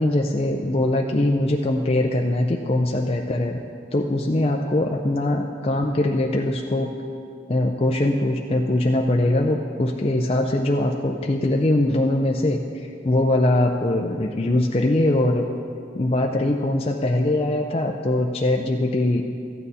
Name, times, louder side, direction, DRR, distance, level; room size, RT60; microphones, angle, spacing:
voice 1, 0.0-3.6 3.9-6.9 7.5-15.4 15.9-19.2, left 1 dB, 30° left, 1 dB, 0.5 m, -22 dB
14.0 x 9.0 x 4.2 m, 2.4 s
head